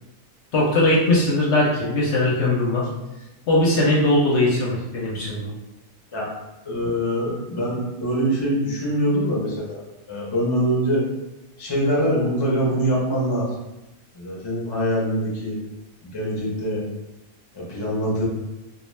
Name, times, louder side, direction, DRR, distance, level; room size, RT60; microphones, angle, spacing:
voice 1, 0.5-2.9 3.5-5.5, left 1 dB, 65° left, -4 dB, 0.8 m, -20 dB
voice 2, 6.7-9.8 10.1-11.1 11.6-13.5 14.1-15.6 16.0-16.8 17.5-18.2, equal, 35° left, -4 dB, 0.4 m, -24 dB
2.3 x 2.2 x 3.1 m, 0.98 s
omnidirectional pair, 1.5 m